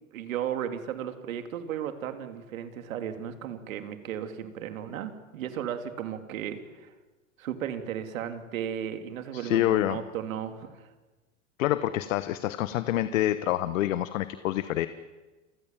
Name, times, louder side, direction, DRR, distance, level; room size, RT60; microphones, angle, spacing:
voice 1, 0.1-6.9 7.4-10.9, right 9 dB, 75° right, 8 dB, 3.2 m, -35 dB
voice 2, 9.3-10.0 11.6-14.9, left 14 dB, 70° left, 13 dB, 1.3 m, -27 dB
30.0 x 24.0 x 7.5 m, 1.2 s
hypercardioid pair, 100°, 41 cm